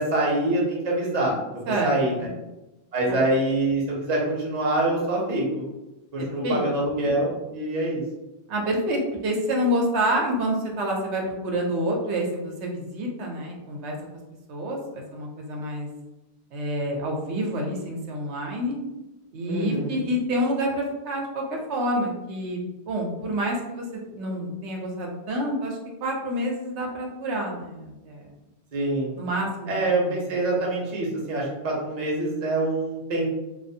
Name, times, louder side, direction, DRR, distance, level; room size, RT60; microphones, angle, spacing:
voice 1, 0.0-1.4 1.8-2.3 2.9-5.6 6.1-8.0 19.5-20.0 28.7-29.2 29.7-33.3, right 2 dB, 45° right, -3 dB, 0.7 m, -25 dB
voice 2, 6.2-6.7 8.5-14.0 14.5-15.9 16.5-18.8 19.3-21.4 21.7-22.6 22.9-28.3 29.2-29.7 30.0-30.2, equal, 80° right, -1 dB, 0.9 m, -28 dB
2.4 x 2.2 x 2.6 m, 0.98 s
omnidirectional pair, 1.1 m